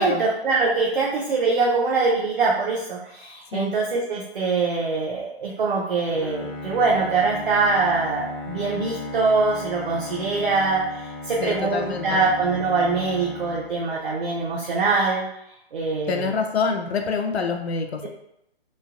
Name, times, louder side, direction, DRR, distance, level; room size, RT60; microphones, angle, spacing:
voice 1, 0.0-15.2 15.7-16.3, right 4 dB, 55° right, -3 dB, 0.6 m, -23 dB
Bowed string instrument, 6.1-14.3, left 2 dB, 25° left, 0.4 m, -36 dB
voice 2, 11.4-12.3 16.1-18.1, left 5 dB, 80° left, 4 dB, 0.5 m, -26 dB
3.1 x 2.2 x 2.5 m, 0.79 s
figure-of-eight pair, 135°, 32 cm